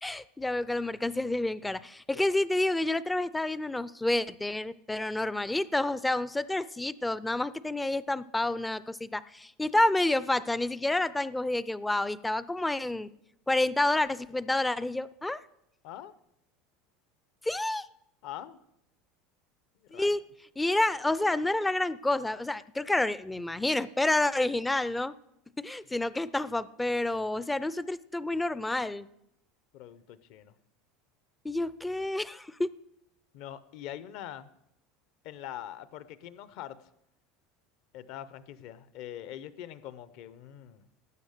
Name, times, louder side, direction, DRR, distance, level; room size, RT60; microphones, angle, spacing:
voice 1, 0.0-13.1 13.5-15.4 17.4-17.9 19.9-20.2 20.6-25.1 25.6-29.1 31.4-32.7, left 2 dB, 5° left, 17 dB, 0.4 m, -29 dB
voice 2, 18.2-18.6 19.8-20.2 29.7-30.5 33.3-34.5 35.2-36.8 37.9-40.9, left 11 dB, 60° left, 15 dB, 0.7 m, -43 dB
12.0 x 8.3 x 6.6 m, 0.78 s
supercardioid pair, 145°, 0 cm